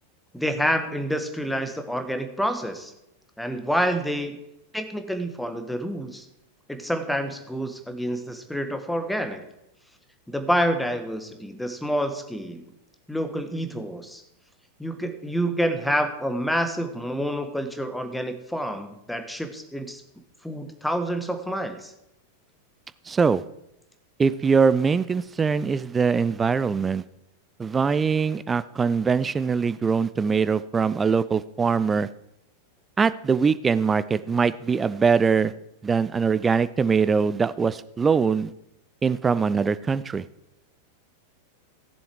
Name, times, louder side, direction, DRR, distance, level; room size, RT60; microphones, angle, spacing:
voice 1, 0.3-2.9 3.4-4.4 4.7-6.2 6.7-9.4 10.3-12.7 13.1-14.2 14.8-20.0 20.4-21.9, equal, 5° left, 8 dB, 1.4 m, -28 dB
voice 2, 23.1-23.4 24.2-27.0 27.6-32.1 33.0-35.5 35.8-38.5 39.0-40.2, right 5 dB, 15° right, 15 dB, 0.5 m, -22 dB
16.0 x 7.1 x 4.7 m, 0.85 s
figure-of-eight pair, 90°, 0 cm